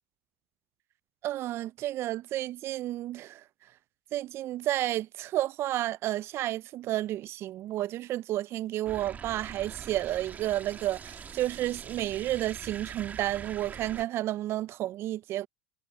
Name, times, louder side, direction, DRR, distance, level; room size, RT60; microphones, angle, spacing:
voice 1, 1.2-3.4 4.1-15.5, right 14 dB, 45° right, 0.5 m, -31 dB
sound 1, 8.9-14.1, right 6 dB, 30° right, 1.6 m, -43 dB
hypercardioid pair, 90°, 6 cm